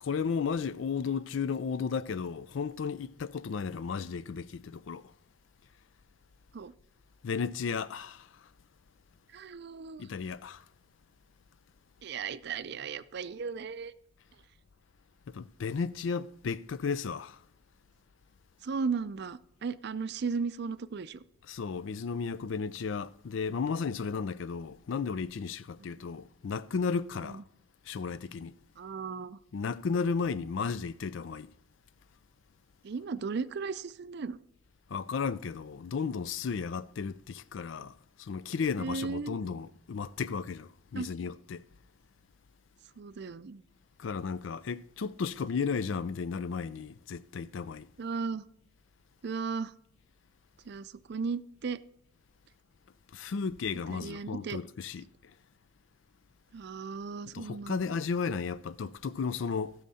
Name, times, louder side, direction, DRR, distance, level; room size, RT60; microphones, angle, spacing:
voice 1, 0.0-5.0 7.2-8.3 10.0-10.6 15.3-17.4 21.5-27.4 27.9-28.5 29.5-31.5 34.9-37.9 38.2-41.7 44.0-47.9 53.1-55.1 57.3-59.7, left 5 dB, 80° left, 0.4 m, -34 dB
voice 2, 9.3-10.0 12.0-13.9 18.6-21.2 25.8-25.9 27.2-27.4 28.8-29.4 32.8-34.4 38.8-39.4 41.0-41.1 43.0-43.6 48.0-48.4 49.2-49.7 50.7-51.8 53.9-54.6 56.5-57.9, right 5 dB, 60° right, 0.5 m, -36 dB
16.0 x 6.5 x 4.2 m
head